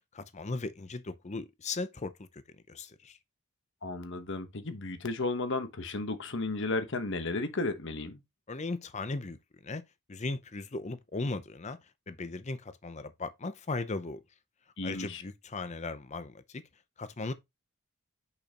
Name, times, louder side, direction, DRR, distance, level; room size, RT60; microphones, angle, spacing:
voice 1, 0.1-2.4 2.7-3.2 8.5-9.8 10.1-11.8 12.1-14.2 14.8-16.6 17.0-17.3, left 3 dB, 30° left, 0.6 m, -37 dB
voice 2, 3.8-8.2 14.8-15.2, left 2 dB, 60° left, 1.1 m, -33 dB
6.6 x 5.5 x 2.9 m
head